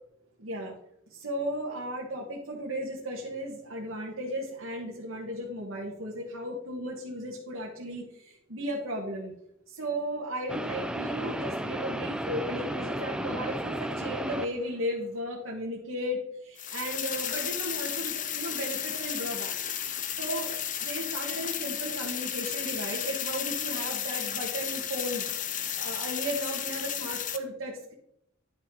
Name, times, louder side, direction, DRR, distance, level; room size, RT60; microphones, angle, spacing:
voice 1, 0.4-0.7 1.1-9.3 9.7-19.5 20.2-20.5 20.8-25.2 25.7-27.9, equal, 85° right, -3 dB, 1.7 m, -35 dB
sound 1, 10.5-14.7, right 1 dB, 5° right, 0.5 m, -34 dB
sound 2, 16.6-27.4, left 9 dB, 40° left, 0.7 m, -33 dB
11.0 x 5.9 x 4.0 m, 0.74 s
head